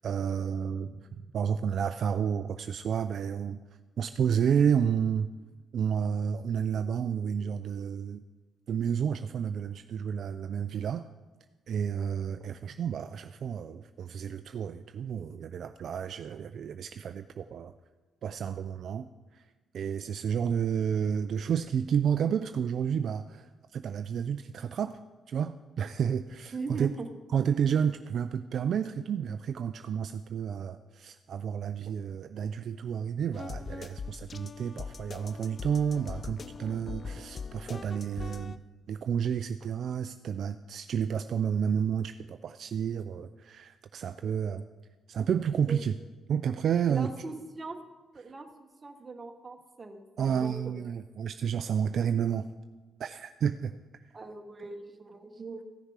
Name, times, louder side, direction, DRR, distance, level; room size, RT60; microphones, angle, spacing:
voice 1, 0.0-3.6 4.0-5.3 5.7-8.2 8.7-11.1 11.7-17.7 18.2-19.4 19.7-25.0 25.3-26.9 27.3-38.6 38.9-44.6 45.1-46.0 46.3-47.1 50.2-52.5 53.0-53.7, right 7 dB, 60° right, 9 dB, 0.3 m, -30 dB
voice 2, 26.5-27.1 45.7-45.8 46.9-47.8 48.1-50.8 54.1-55.6, right 3 dB, 30° right, 5 dB, 1.2 m, -40 dB
sound 1, 33.3-38.6, left 5 dB, 40° left, 0.4 m, -41 dB
14.5 x 6.6 x 4.8 m, 1.3 s
cardioid pair, 90°, 0 cm